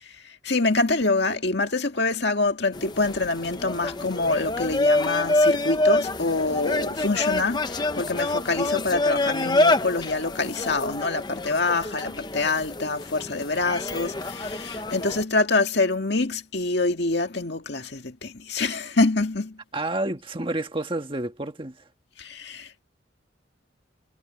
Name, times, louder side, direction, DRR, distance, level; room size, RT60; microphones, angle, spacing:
voice 1, 0.4-19.6 22.2-22.8, left 3 dB, 60° left, 2.1 m, -25 dB
sound 1, 2.7-15.2, left 2 dB, 20° left, 0.8 m, -26 dB
voice 2, 19.7-21.7, right 2 dB, 25° right, 1.7 m, -29 dB
head